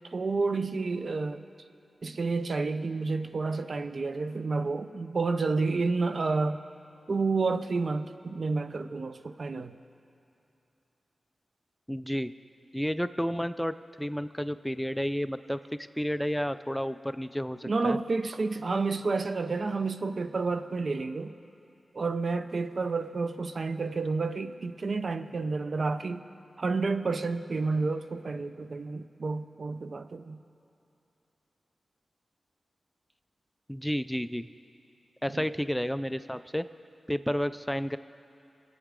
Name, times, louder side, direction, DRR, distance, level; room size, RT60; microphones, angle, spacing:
voice 1, 0.1-1.4 2.0-6.6 7.1-9.8 17.6-21.4 21.9-26.2 26.6-30.4 35.3-35.4, right 3 dB, 60° right, 9 dB, 0.6 m, -30 dB
voice 2, 11.9-12.3 12.7-18.0 33.7-34.5 35.2-36.6 37.1-38.0, equal, 5° left, 12 dB, 0.4 m, -31 dB
26.5 x 9.1 x 3.7 m, 2.8 s
cardioid pair, 50°, 0 cm